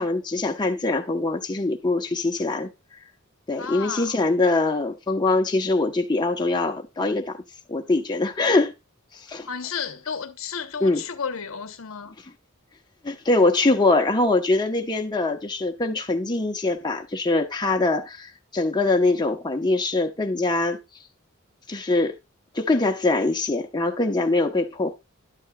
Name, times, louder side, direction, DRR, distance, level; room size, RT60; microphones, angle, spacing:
voice 1, 0.0-2.7 3.5-7.4 7.7-8.7 9.3-9.5 10.8-11.0 13.0-20.8 21.7-22.2 22.5-24.9, left 2 dB, 20° left, 0.9 m, -23 dB
voice 2, 3.6-4.2 9.5-12.1, left 6 dB, 75° left, 1.0 m, -32 dB
11.5 x 9.4 x 2.3 m
head